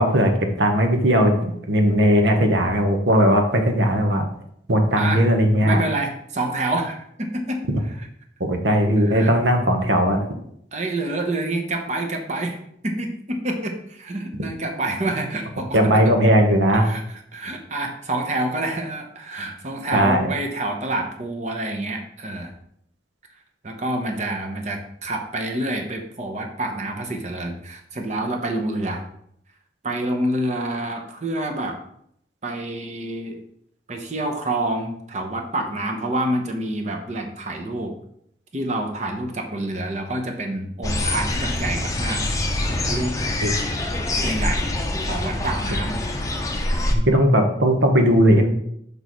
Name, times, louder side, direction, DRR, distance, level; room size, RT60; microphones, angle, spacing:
voice 1, 0.0-4.3 4.7-5.8 7.7-7.8 8.4-10.2 15.7-16.9 19.9-20.3 43.4-43.5 46.9-48.5, equal, 85° right, 4 dB, 1.0 m, -18 dB
voice 2, 5.6-7.6 8.0-8.1 9.0-9.3 10.7-15.8 16.7-17.0 17.3-22.5 23.6-29.0 29.8-31.8 32.4-33.4 33.9-37.9 38.5-42.2 42.7-43.1 44.2-44.7 45.1-46.0, right 2 dB, 40° right, 3 dB, 0.9 m, -27 dB
sound 1, 40.8-46.9, left 1 dB, 20° left, 0.6 m, -25 dB
6.2 x 5.4 x 3.1 m, 0.70 s
head